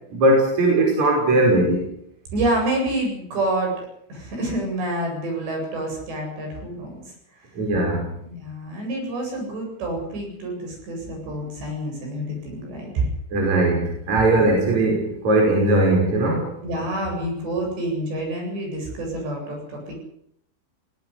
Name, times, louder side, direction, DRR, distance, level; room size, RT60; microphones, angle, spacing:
voice 1, 0.1-1.9 7.6-8.0 13.3-16.5, right 2 dB, 35° right, 0 dB, 6.3 m, -19 dB
voice 2, 2.3-3.8 4.1-7.0 8.2-13.1 16.6-20.0, right 1 dB, 60° right, 1 dB, 10.0 m, -27 dB
19.0 x 18.0 x 9.8 m, 0.74 s
omnidirectional pair, 5.7 m